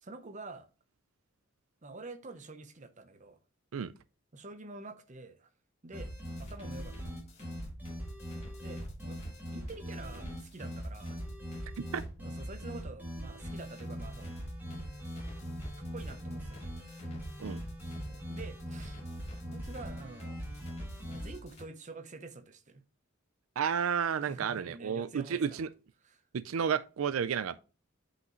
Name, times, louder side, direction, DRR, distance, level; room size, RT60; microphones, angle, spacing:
voice 1, 0.0-0.7 1.8-3.4 4.3-5.5 5.8-6.1 6.4-7.2 8.6-9.2 9.5-11.3 12.2-14.3 15.3-15.4 15.9-16.9 18.1-19.0 19.5-20.4 21.1-22.8 24.2-25.6 26.0-26.2, right 3 dB, 35° right, 0.8 m, -47 dB
sound 1, 5.9-21.4, equal, 10° right, 2.3 m, -41 dB
sound 2, 6.2-12.1 13.4-21.7, left 2 dB, 30° left, 2.0 m, -53 dB
voice 2, 23.6-25.7 26.3-27.6, right 7 dB, 90° right, 0.4 m, -31 dB
8.0 x 5.8 x 3.0 m
head